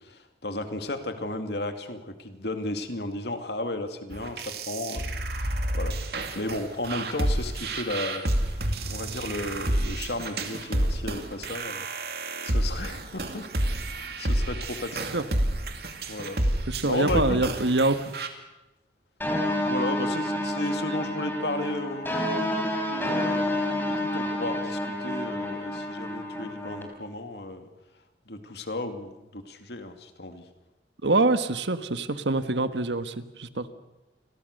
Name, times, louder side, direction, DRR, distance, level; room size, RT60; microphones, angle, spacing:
voice 1, 0.0-6.0 6.3-11.9 12.2-13.4 13.9-15.1 16.1-16.4 16.8-17.5 19.6-27.7 28.3-30.5, left 2 dB, 70° left, 7 dB, 2.5 m, -34 dB
sound 1, 4.1-18.3, right 1 dB, 60° right, 2.6 m, -29 dB
voice 2, 16.7-18.1 31.0-33.7, right 2 dB, 80° right, 11 dB, 1.5 m, -25 dB
sound 2, 19.2-26.8, left 1 dB, 10° left, 4.1 m, -29 dB
30.0 x 22.5 x 6.7 m, 1.0 s
head